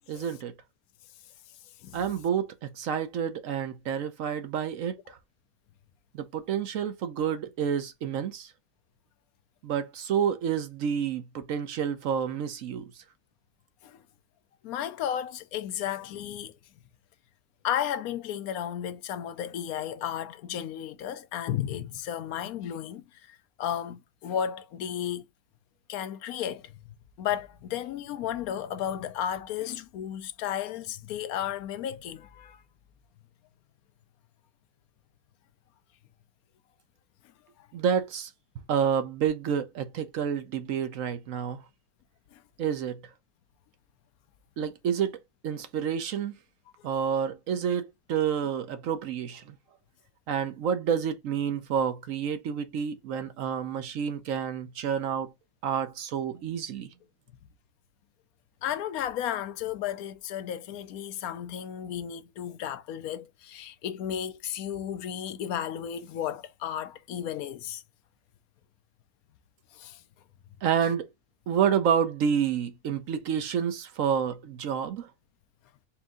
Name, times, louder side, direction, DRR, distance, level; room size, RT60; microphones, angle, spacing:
voice 1, 0.1-0.5 1.9-5.2 6.1-8.5 9.6-13.0 37.7-38.3 38.7-41.6 42.6-43.0 44.6-46.3 46.8-49.5 50.3-55.3 55.6-56.9 70.6-71.1 71.5-75.1, right 8 dB, 65° right, 1.0 m, -29 dB
voice 2, 14.6-16.5 17.6-25.2 25.9-32.6 37.6-37.7 42.3-42.4 46.8-46.9 58.6-67.8 69.7-70.0 70.8-70.9, left 10 dB, 75° left, 1.1 m, -34 dB
4.4 x 2.6 x 3.5 m
omnidirectional pair, 1.6 m